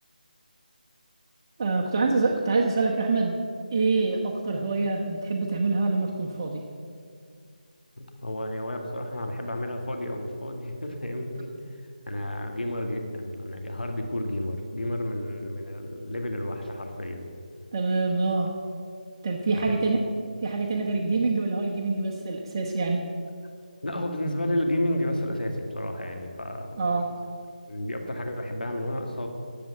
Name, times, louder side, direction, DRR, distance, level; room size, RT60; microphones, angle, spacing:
voice 1, 1.6-3.4 3.7-6.6 17.7-18.5 19.2-20.0 20.4-23.0 26.8-27.1, right 3 dB, 30° right, -1 dB, 0.9 m, -25 dB
voice 2, 8.0-11.5 12.1-17.3 19.6-20.0 20.9-21.0 23.8-26.7 27.7-29.3, left 1 dB, 90° left, 3 dB, 1.9 m, -31 dB
11.0 x 7.6 x 7.8 m, 2.3 s
figure-of-eight pair, 165°, 5 cm